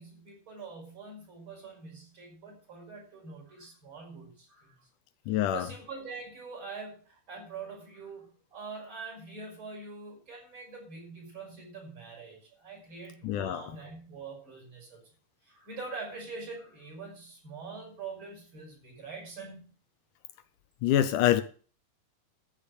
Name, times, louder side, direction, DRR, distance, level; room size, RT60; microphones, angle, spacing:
voice 1, 0.0-4.9 5.3-15.1 15.4-19.7, right 4 dB, 35° right, 6.6 m, -44 dB
voice 2, 5.3-5.7 13.2-13.6 20.8-21.4, left 12 dB, 80° left, 2.2 m, -25 dB
13.5 x 5.7 x 8.2 m
omnidirectional pair, 3.8 m